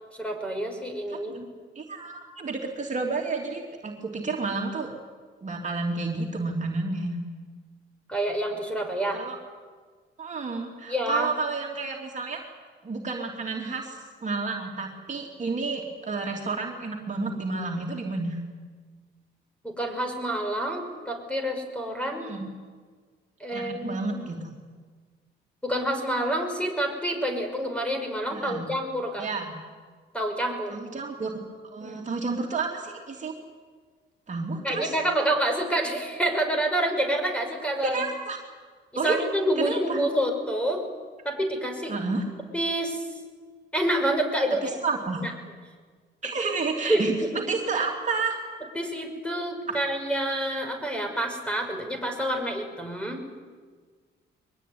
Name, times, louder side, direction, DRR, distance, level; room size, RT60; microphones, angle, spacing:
voice 1, 0.1-1.4 8.1-9.2 10.9-11.3 19.6-22.3 23.4-24.2 25.6-29.3 30.1-30.8 31.8-32.0 34.6-38.0 39.0-40.8 41.2-41.9 42.5-43.1 43.7-44.8 45.2-45.3 46.9-47.3 48.8-53.2, right 1 dB, 5° left, 4 dB, 5.9 m, -28 dB
voice 2, 1.7-4.9 5.4-7.2 9.1-9.4 10.2-12.4 12.8-18.4 22.0-22.5 23.5-24.5 28.3-28.6 29.2-29.5 30.7-31.4 31.7-33.3 34.3-34.9 37.8-38.4 38.9-39.2 39.6-40.0 41.9-42.2 44.6-45.2 46.2-47.1 47.4-48.4, right 3 dB, 35° right, 0 dB, 3.1 m, -30 dB
23.0 x 21.0 x 9.6 m, 1.5 s
cardioid pair, 90°, 20 cm